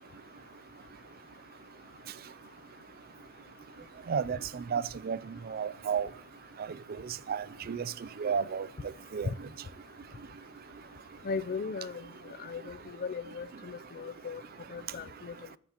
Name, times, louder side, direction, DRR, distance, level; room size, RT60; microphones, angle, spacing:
voice 1, 4.1-5.2 5.5-6.1 7.3-7.8 8.2-8.7 9.1-9.3, right 6 dB, 50° right, 0.4 m, -32 dB
voice 2, 11.2-12.1 12.4-14.4 14.7-15.3, left 5 dB, 50° left, 0.5 m, -37 dB
23.0 x 9.6 x 2.9 m
head